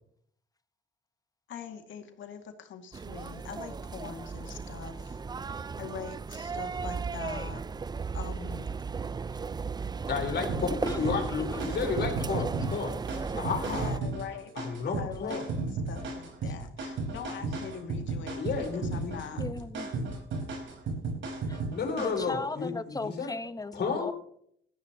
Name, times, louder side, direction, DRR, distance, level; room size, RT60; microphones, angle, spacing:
voice 1, 1.5-5.2 5.5-7.6 8.1-8.7 13.6-14.5 15.0-15.5 15.9-19.4, left 7 dB, 75° left, 5 dB, 2.3 m, -43 dB
sound 1, 2.9-14.0, right 5 dB, 20° right, 0.4 m, -35 dB
voice 2, 10.1-10.7 11.0-12.9 13.3-13.9 14.6-15.4 17.4-17.5 17.8-17.9 18.4-19.2 21.7-23.3 23.7-24.1, left 5 dB, 55° left, 3 dB, 4.1 m, -32 dB
sound 2, 10.5-22.3, right 3 dB, 70° right, 4.4 m, -35 dB
voice 3, 10.7-11.2 11.5-11.7 19.4-20.0 21.4-21.6 22.0-24.1, left 3 dB, 20° left, 10 dB, 1.2 m, -37 dB
17.5 x 13.5 x 2.9 m, 0.67 s
cardioid pair, 90°, 20 cm